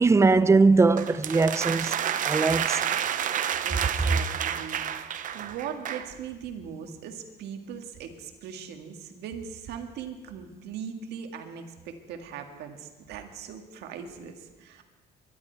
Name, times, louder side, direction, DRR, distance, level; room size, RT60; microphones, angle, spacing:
voice 1, 0.0-1.9 2.2-2.8, right 3 dB, 15° right, 0.5 m, -20 dB
sound 1, 1.0-6.1, right 9 dB, 50° right, 0.8 m, -29 dB
voice 2, 3.6-14.8, right 7 dB, 80° right, 1.8 m, -40 dB
23.0 x 12.0 x 4.6 m
cardioid pair, 110°, 17 cm